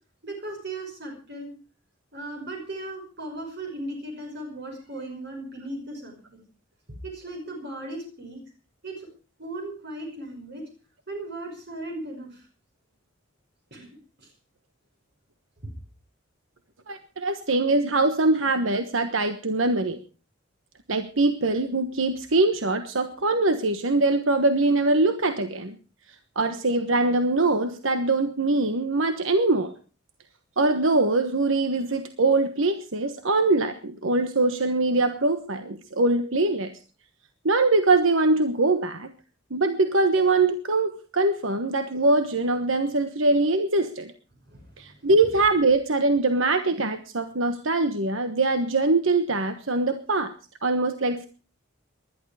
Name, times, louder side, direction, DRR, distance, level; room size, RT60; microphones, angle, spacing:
voice 1, 0.2-1.5 2.1-6.4 7.0-8.4 8.8-9.1 9.4-10.6 11.1-12.5 13.7-13.9 14.2-14.3 44.5-45.3, right 2 dB, 55° right, 2 dB, 5.7 m, -37 dB
voice 2, 16.9-20.0 20.9-25.8 26.3-29.7 30.6-36.7 37.4-39.1 39.5-44.1 44.8-50.3 50.6-51.3, right 2 dB, 70° right, 9 dB, 1.2 m, -23 dB
20.0 x 11.5 x 4.9 m, 0.36 s
head